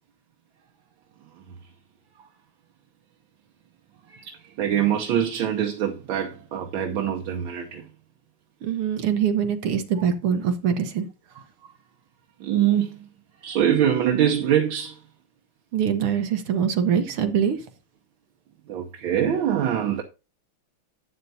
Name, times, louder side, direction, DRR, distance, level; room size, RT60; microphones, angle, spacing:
voice 1, 4.1-7.9 12.4-13.1 13.4-15.0 18.7-20.0, right 10 dB, 70° right, 1.5 m, -24 dB
voice 2, 8.6-11.1 15.7-17.6, right 8 dB, 85° right, 2.0 m, -23 dB
11.5 x 8.0 x 2.7 m
omnidirectional pair, 2.4 m